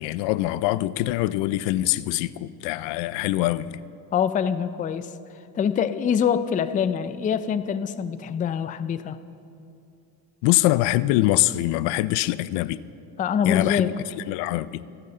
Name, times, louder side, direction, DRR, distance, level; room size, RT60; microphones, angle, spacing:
voice 1, 0.0-3.8 10.4-12.8 13.4-13.9 14.3-14.9, left 16 dB, 90° left, 0.5 m, -23 dB
voice 2, 4.1-5.1 5.6-9.2 13.2-13.9, left 7 dB, 20° left, 0.3 m, -24 dB
27.5 x 9.6 x 3.8 m
cardioid pair, 135°, 42 cm